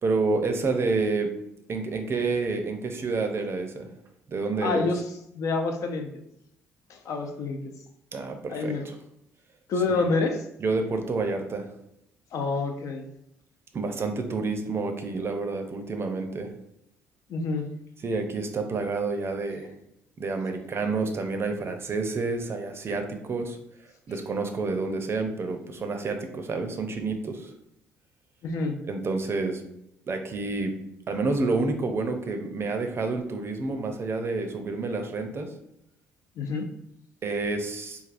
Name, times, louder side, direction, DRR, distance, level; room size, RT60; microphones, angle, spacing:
voice 1, 0.0-1.3 1.7-3.9 4.3-4.9 8.1-9.0 9.9-10.1 10.6-11.7 13.7-16.5 18.0-19.7 20.2-23.6 24.1-27.5 28.8-29.6 30.1-30.7 31.1-35.5 37.2-38.0, right 3 dB, 40° right, 6 dB, 0.5 m, -29 dB
voice 2, 4.6-5.0 5.3-6.2 6.9-7.6 8.5-8.9 9.7-10.4 12.3-13.1 17.3-17.7 28.4-28.8 36.4-36.7, left 3 dB, 55° left, 5 dB, 0.4 m, -27 dB
3.3 x 2.3 x 2.4 m, 0.80 s
hypercardioid pair, 50°, 7 cm